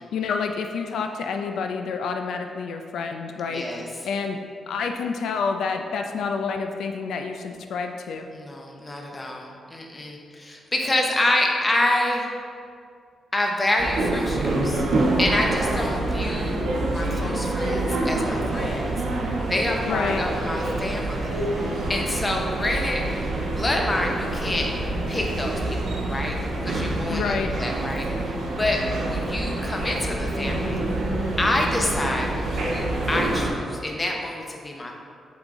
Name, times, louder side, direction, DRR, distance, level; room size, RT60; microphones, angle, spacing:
voice 1, 0.0-4.4 4.7-8.3 19.8-20.2 27.1-27.5, left 5 dB, 80° left, 5 dB, 0.4 m, -28 dB
voice 2, 3.5-3.8 8.3-12.3 13.3-16.6 16.9-18.9 19.5-23.0 23.5-24.7 25.1-26.4 26.6-28.1 28.6-30.8 31.4-34.9, left 1 dB, 15° left, 0 dB, 0.7 m, -27 dB
sound 1, 13.8-33.5, right 2 dB, 90° right, 1.2 m, -26 dB
7.8 x 3.8 x 3.7 m, 2.3 s
wide cardioid pair, 165°, 0 cm